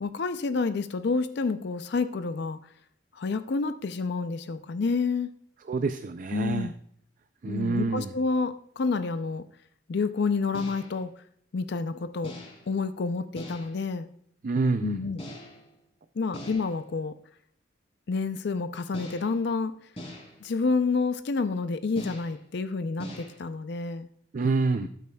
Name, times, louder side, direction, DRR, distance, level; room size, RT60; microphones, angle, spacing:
voice 1, 0.0-2.6 3.2-5.3 6.3-6.7 7.5-9.4 9.9-11.1 11.5-12.3 12.7-14.1 14.8-15.2 16.2-17.1 18.1-19.7 20.4-24.1 24.8-24.9, left 4 dB, 60° left, 11 dB, 0.4 m, -29 dB
voice 2, 5.7-6.7 7.4-8.1 14.4-15.0 24.3-24.9, right 3 dB, 45° right, 9 dB, 0.4 m, -27 dB
sound 1, 10.5-11.0 12.2-12.7 13.4-13.9 15.2-15.8 16.3-16.9 18.9-19.4 20.0-20.5 22.0-22.5 23.0-23.4, equal, 30° left, 2.9 m, -42 dB
13.5 x 8.4 x 2.3 m, 0.64 s
head